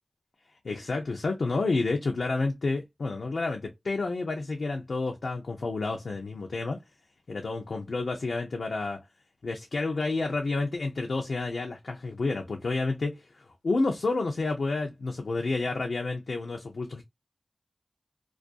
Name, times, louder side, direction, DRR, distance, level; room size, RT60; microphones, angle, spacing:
voice 1, 0.6-6.8 7.3-9.0 9.4-17.0, left 3 dB, 80° left, 0.5 m, -30 dB
2.4 x 2.2 x 2.5 m
cardioid pair, 45°, 0 cm